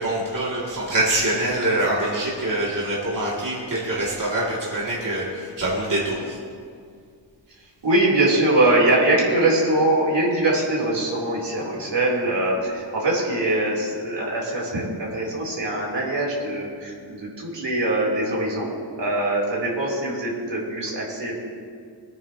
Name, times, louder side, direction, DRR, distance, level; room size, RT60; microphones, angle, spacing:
voice 1, 0.0-6.4, right 1 dB, 45° right, -6 dB, 2.4 m, -24 dB
voice 2, 7.8-18.7 19.0-21.3, right 2 dB, 70° right, -4 dB, 3.3 m, -22 dB
22.5 x 9.3 x 2.8 m, 2.1 s
wide cardioid pair, 95°, 44 cm